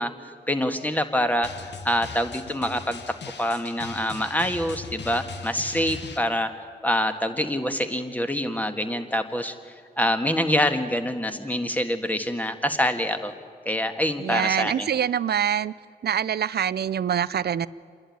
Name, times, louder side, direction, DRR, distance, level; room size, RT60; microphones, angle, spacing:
voice 1, 0.0-3.0 3.4-6.5 6.8-13.3 13.6-14.9, left 1 dB, 10° left, 7 dB, 1.7 m, -26 dB
Drum, 1.4-6.2, left 5 dB, 85° left, 1.1 m, -39 dB
voice 2, 14.2-15.7 16.0-17.7, right 9 dB, 65° right, 18 dB, 0.5 m, -25 dB
27.0 x 11.0 x 9.4 m, 2.1 s
cardioid pair, 55°, 18 cm